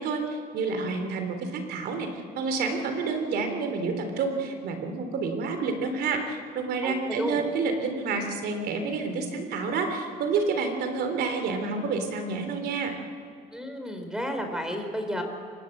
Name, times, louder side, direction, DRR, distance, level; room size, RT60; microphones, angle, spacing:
voice 1, 0.0-2.1 2.4-13.0, right 4 dB, 70° right, 6 dB, 3.6 m, -29 dB
voice 2, 6.8-7.4 13.5-15.2, equal, 5° right, 5 dB, 4.3 m, -32 dB
25.0 x 21.0 x 8.1 m, 2.5 s
cardioid pair, 110°, 17 cm